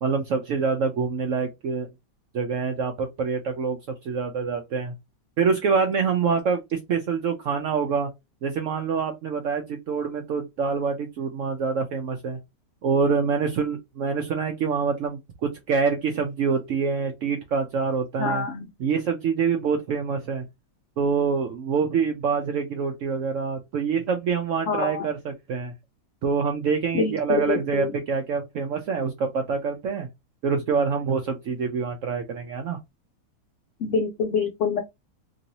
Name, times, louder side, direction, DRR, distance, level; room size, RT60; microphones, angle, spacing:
voice 1, 0.0-1.9 2.3-4.9 5.4-8.1 8.4-12.4 12.8-18.5 18.8-20.4 21.0-25.7 26.2-30.1 30.4-32.8, right 5 dB, 75° right, 0.7 m, -26 dB
voice 2, 18.2-18.7 24.7-25.1 26.9-27.9 33.8-34.8, left 5 dB, 90° left, 0.6 m, -26 dB
3.0 x 2.6 x 2.8 m
omnidirectional pair, 1.8 m